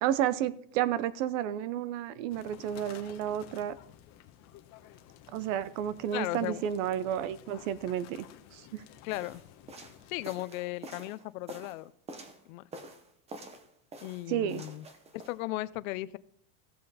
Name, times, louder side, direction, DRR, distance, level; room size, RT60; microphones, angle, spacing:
voice 1, 0.0-3.7 5.3-8.3 8.5-8.8 14.3-14.6, right 10 dB, 60° right, 17 dB, 0.7 m, -31 dB
sound 1, 2.3-10.3, left 11 dB, 35° left, 0.9 m, -53 dB
voice 2, 6.1-6.6 9.0-9.4 10.1-11.9 12.5-12.6 14.0-14.9 15.1-16.2, left 18 dB, 65° left, 17 dB, 0.6 m, -36 dB
sound 2, 9.1-12.4 12.7-13.7 13.9-15.4, right 2 dB, 15° right, 0.7 m, -47 dB
14.5 x 7.6 x 4.1 m, 0.67 s
supercardioid pair, 160°, 44 cm